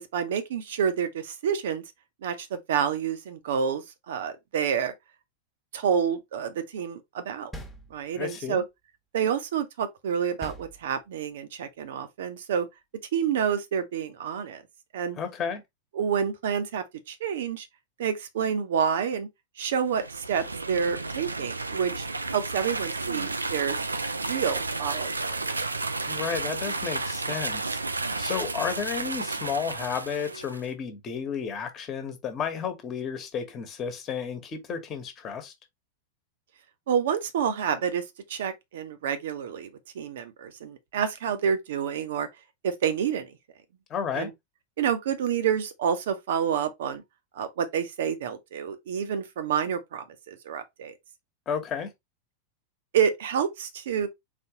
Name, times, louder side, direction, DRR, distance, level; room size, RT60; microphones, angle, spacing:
voice 1, 0.0-1.8 2.2-4.9 5.7-7.5 7.9-8.6 9.1-12.7 13.1-14.6 14.9-15.2 15.9-17.7 18.0-19.3 19.6-22.1 22.3-23.8 24.2-25.4 36.9-39.7 39.9-42.3 42.6-43.3 44.1-44.3 44.8-47.0 47.3-50.9 52.9-54.1, right 7 dB, 60° right, 0.8 m, -28 dB
sound 1, 7.5-8.4 10.4-11.3, right 1 dB, 5° left, 1.1 m, -43 dB
voice 2, 8.1-8.6 15.2-15.6 26.1-27.8 28.2-35.5 43.9-44.3 51.5-51.9, left 7 dB, 30° left, 1.2 m, -32 dB
sound 2, 19.8-30.7, right 3 dB, 80° right, 0.4 m, -32 dB
4.2 x 3.4 x 2.9 m
figure-of-eight pair, 90°, 0 cm